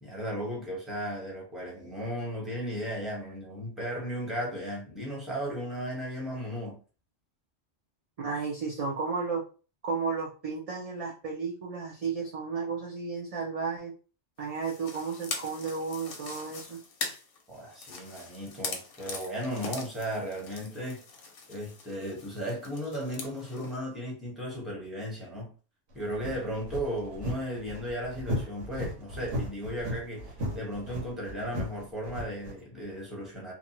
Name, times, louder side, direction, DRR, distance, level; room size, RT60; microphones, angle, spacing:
voice 1, 0.0-6.8 17.5-21.0 21.5-25.5 25.9-33.5, equal, ahead, -3 dB, 1.0 m, -35 dB
voice 2, 8.2-9.4 9.8-13.9 14.4-16.8, right 5 dB, 50° right, -3 dB, 0.4 m, -33 dB
sound 1, 14.5-23.8, left 4 dB, 60° left, 0.8 m, -42 dB
sound 2, 25.9-32.5, left 1 dB, 90° right, 1.2 m, -36 dB
2.6 x 2.3 x 2.9 m, 0.36 s
omnidirectional pair, 1.2 m